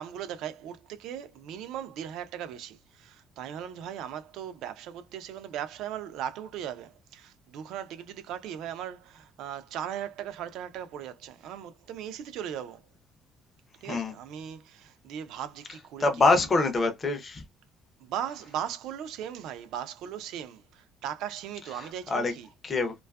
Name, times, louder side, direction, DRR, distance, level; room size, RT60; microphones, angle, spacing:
voice 1, 0.0-12.8 13.8-16.1 16.3-16.5 18.0-22.5, right 9 dB, 70° right, 0.4 m, -38 dB
voice 2, 16.0-17.4 21.8-22.3 22.6-22.9, left 3 dB, 20° left, 0.4 m, -25 dB
2.5 x 2.3 x 2.2 m
cardioid pair, 175°, 0 cm